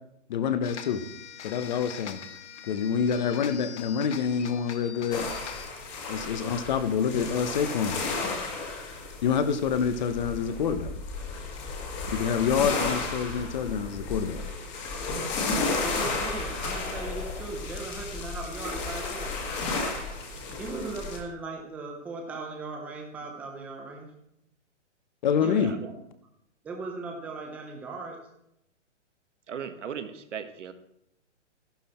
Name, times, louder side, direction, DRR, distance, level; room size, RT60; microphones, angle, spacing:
voice 1, 0.3-1.0 1.4-2.2 2.6-5.3 6.1-8.0 9.2-10.9 12.1-14.4 25.2-25.7, left 7 dB, 40° left, 11 dB, 0.9 m, -27 dB
sound 1, 0.6-5.7, left 8 dB, 65° left, 1.3 m, -43 dB
sound 2, 5.1-21.2, left 3 dB, 20° left, 1.6 m, -33 dB
voice 2, 15.8-19.3 20.6-24.1 25.4-25.9 26.6-28.2, right 3 dB, 5° right, 1 dB, 0.7 m, -38 dB
voice 3, 25.5-25.9 29.5-30.7, right 7 dB, 75° right, 9 dB, 1.6 m, -37 dB
12.0 x 11.5 x 4.3 m, 0.78 s
hypercardioid pair, 165°, 37 cm